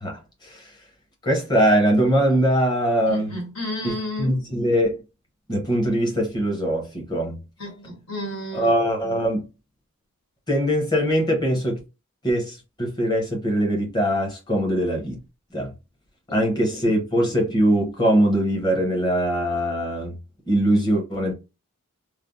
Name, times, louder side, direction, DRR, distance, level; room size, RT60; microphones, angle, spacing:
voice 1, 0.0-0.7 1.2-3.3 3.8-3.9 4.2-5.0 5.5-7.4 8.5-9.4 10.5-11.8 12.2-15.2 15.5-15.7 16.3-20.1 20.5-21.3, equal, 20° left, 0.9 m, -22 dB
voice 2, 3.1-4.4 7.6-8.7 16.3-17.0, left 1 dB, 80° left, 1.5 m, -33 dB
3.3 x 2.0 x 2.5 m
head